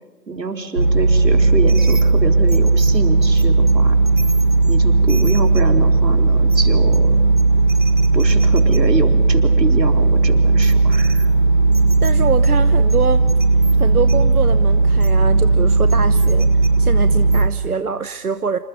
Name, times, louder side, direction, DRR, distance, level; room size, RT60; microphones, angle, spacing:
voice 1, 0.3-4.0 4.7-7.2 8.1-11.3, right 3 dB, 80° right, 6 dB, 4.1 m, -26 dB
sound 1, 0.8-17.5, right 3 dB, 30° right, 0.9 m, -15 dB
voice 2, 12.0-13.3 13.8-16.5 16.8-18.6, right 5 dB, 60° right, 12 dB, 1.1 m, -24 dB
28.5 x 27.5 x 5.3 m, 1.3 s
figure-of-eight pair, 170°, 49 cm